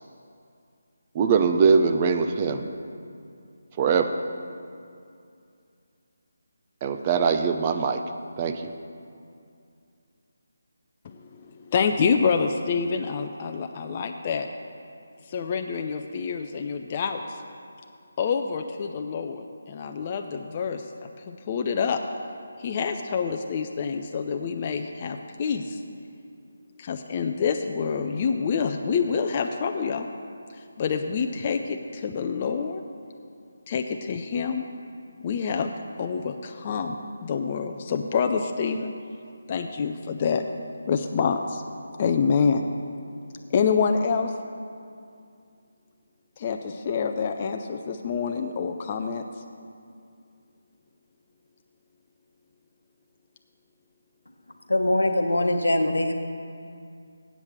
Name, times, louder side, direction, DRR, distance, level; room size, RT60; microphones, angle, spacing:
voice 1, 1.1-2.7 3.8-4.2 6.8-8.0 8.4-8.7, right 5 dB, 25° right, 7 dB, 0.5 m, -22 dB
voice 2, 11.0-14.5 15.3-17.2 18.2-20.8 21.3-22.0 22.6-25.8 26.8-30.1 30.8-32.8 33.7-34.6 35.2-35.7 36.0-38.9 39.5-40.4 40.8-41.6 42.0-42.7 43.5-44.3 46.4-49.2, left 6 dB, 30° left, 5 dB, 0.4 m, -27 dB
voice 3, 54.7-56.1, left 1 dB, 80° left, 5 dB, 1.0 m, -22 dB
8.1 x 7.1 x 7.1 m, 2.4 s
figure-of-eight pair, 155°, 0 cm